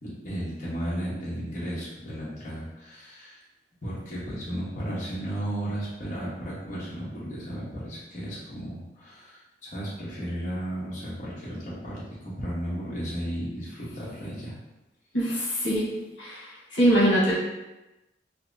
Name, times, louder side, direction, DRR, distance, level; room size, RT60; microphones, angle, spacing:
voice 1, 0.0-3.4 3.8-14.5, equal, 45° left, -8 dB, 1.1 m, -34 dB
voice 2, 15.1-15.9 16.2-17.4, equal, 80° left, -7 dB, 1.2 m, -23 dB
5.6 x 2.0 x 2.7 m, 0.99 s
head